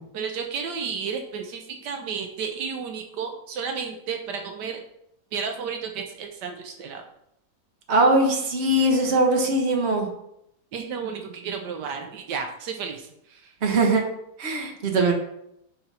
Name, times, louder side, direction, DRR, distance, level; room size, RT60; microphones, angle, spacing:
voice 1, 0.1-4.8 5.3-7.0 10.7-13.5, right 6 dB, 80° right, 4 dB, 1.4 m, -32 dB
voice 2, 7.9-10.1 13.6-14.0 14.4-15.1, right 2 dB, 40° right, 2 dB, 1.4 m, -21 dB
7.0 x 3.9 x 5.6 m, 0.78 s
omnidirectional pair, 1.8 m